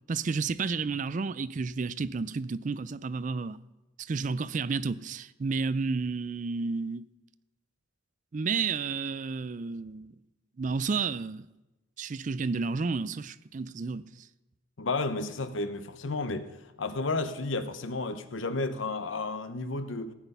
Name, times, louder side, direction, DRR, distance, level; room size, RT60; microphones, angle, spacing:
voice 1, 0.1-3.6 4.0-7.0 8.3-10.1 10.6-11.5 12.0-14.3, right 4 dB, 40° right, 0.4 m, -31 dB
voice 2, 14.8-16.5 16.8-20.1, left 3 dB, 70° left, 0.9 m, -32 dB
16.0 x 9.2 x 5.4 m
head